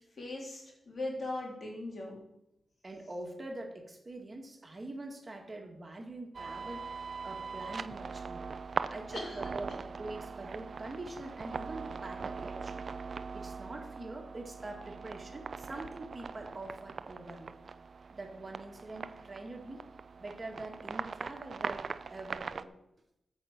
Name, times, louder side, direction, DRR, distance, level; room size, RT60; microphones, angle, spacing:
voice 1, 0.2-2.2 9.1-9.4, left 2 dB, 55° left, -2 dB, 3.5 m, -39 dB
voice 2, 2.8-8.5 8.9-12.8 13.3-17.6 18.1-19.8 20.2-22.7, right 2 dB, 40° right, 3 dB, 1.9 m, -44 dB
sound 1, 6.3-22.7, right 5 dB, 60° right, 0.4 m, -41 dB
8.9 x 5.7 x 6.6 m, 0.86 s
supercardioid pair, 45°, 0 cm